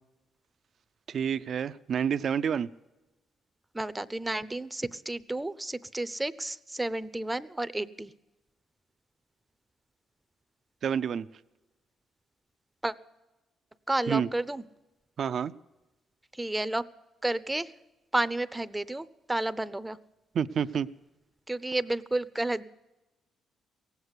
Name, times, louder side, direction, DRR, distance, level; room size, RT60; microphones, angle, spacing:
voice 1, 1.1-2.7 10.8-11.3 14.1-14.3 15.2-15.5 20.3-20.9, right 7 dB, 55° right, 13 dB, 0.4 m, -28 dB
voice 2, 3.7-8.1 12.8-12.9 13.9-14.6 16.3-16.8 17.2-17.7 18.1-20.0 21.5-22.7, right 2 dB, 10° right, 16 dB, 0.6 m, -31 dB
17.5 x 8.1 x 9.6 m, 1.1 s
cardioid pair, 90°, 0 cm